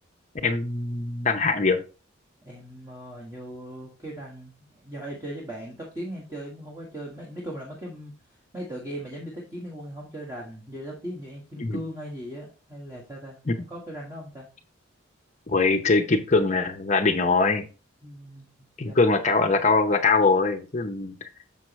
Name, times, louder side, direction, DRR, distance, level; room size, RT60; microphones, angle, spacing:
voice 1, 0.4-1.8 11.6-11.8 13.5-13.6 15.5-17.6 18.8-21.1, left 3 dB, 35° left, 7 dB, 0.7 m, -22 dB
voice 2, 2.4-8.1 8.5-14.5 18.0-18.5 18.8-19.1, equal, 15° right, -4 dB, 1.5 m, -38 dB
6.9 x 6.1 x 3.1 m, 0.33 s
head